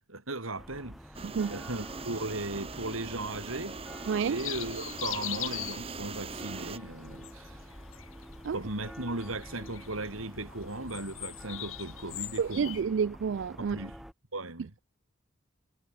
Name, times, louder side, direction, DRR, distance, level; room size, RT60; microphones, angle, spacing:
voice 1, 0.0-3.8 4.2-7.6 8.5-12.8 13.6-14.0 14.3-14.7, right 2 dB, 85° right, 5.3 m, -37 dB
sound 1, 0.6-14.1, equal, ahead, 2.8 m, -48 dB
sound 2, 1.1-6.8, right 4 dB, 30° right, 1.0 m, -42 dB
sound 3, 2.8-12.8, left 14 dB, 80° left, 2.4 m, -43 dB
voice 2, 12.4-13.8, right 6 dB, 60° right, 0.3 m, -29 dB
head